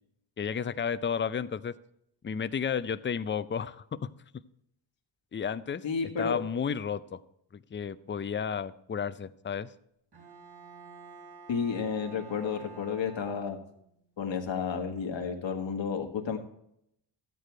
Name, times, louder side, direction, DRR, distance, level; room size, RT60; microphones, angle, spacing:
voice 1, 0.4-1.8 2.2-4.1 5.3-5.8 6.2-7.2 7.5-9.7, left 7 dB, 25° left, 14 dB, 0.5 m, -32 dB
voice 2, 5.8-6.4 11.5-13.6 14.2-16.4, left 6 dB, 70° left, 5 dB, 1.6 m, -31 dB
Bowed string instrument, 10.1-13.8, right 5 dB, 55° right, 4.6 m, -50 dB
13.0 x 9.2 x 4.6 m, 0.75 s
cardioid pair, 80°, 46 cm